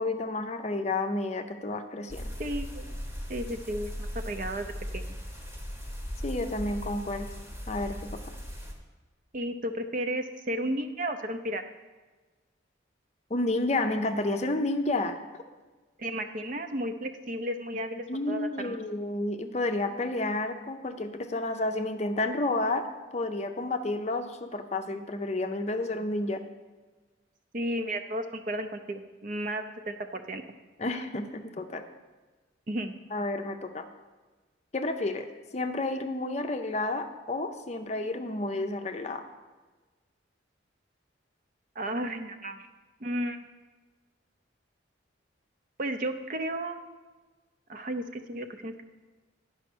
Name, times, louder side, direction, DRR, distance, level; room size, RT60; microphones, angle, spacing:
voice 1, 0.0-2.3 6.2-7.3 7.7-8.2 13.3-15.4 17.7-22.8 23.1-26.4 30.8-31.8 33.1-33.8 34.7-35.3 35.5-39.2, left 2 dB, 35° left, 7 dB, 0.5 m, -31 dB
sound 1, 2.1-8.7, equal, 10° right, 0.9 m, -38 dB
voice 2, 2.4-3.0 3.3-5.2 9.3-11.6 16.0-18.8 27.5-30.4 32.7-32.9 41.8-42.7 43.0-43.4 45.8-46.8 47.7-48.8, right 1 dB, 40° right, 7 dB, 0.5 m, -33 dB
10.0 x 5.5 x 6.1 m, 1.3 s
head